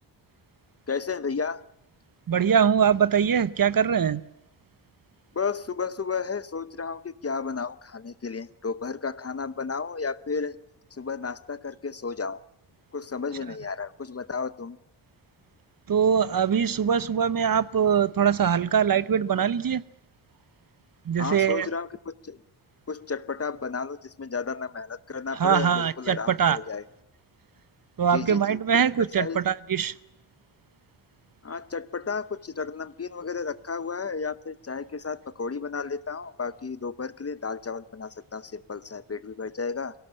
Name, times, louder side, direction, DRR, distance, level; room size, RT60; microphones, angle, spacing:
voice 1, 0.9-1.6 5.3-10.6 10.9-12.4 12.9-14.8 21.2-22.4 22.9-26.8 28.1-28.6 29.2-29.4 31.4-39.9, left 5 dB, 35° left, 0.8 m, -33 dB
voice 2, 2.3-4.2 15.9-19.8 21.1-21.7 25.4-26.6 28.0-29.9, right 7 dB, 50° right, 0.8 m, -22 dB
23.0 x 17.5 x 8.5 m
wide cardioid pair, 145°, 43 cm